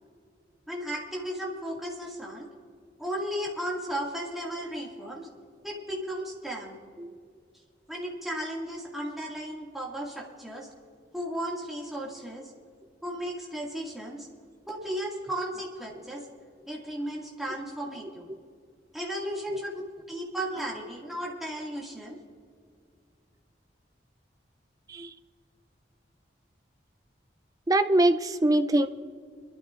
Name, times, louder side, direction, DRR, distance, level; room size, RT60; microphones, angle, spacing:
voice 1, 0.7-2.5 3.0-5.3 5.6-6.8 7.9-10.7 11.1-12.5 13.0-14.3 14.7-16.3 16.7-18.3 18.9-19.7 20.1-22.2, equal, ahead, -3 dB, 2.0 m, -35 dB
voice 2, 27.7-28.9, right 1 dB, 20° right, 9 dB, 0.4 m, -23 dB
24.0 x 12.5 x 2.5 m, 2.2 s
head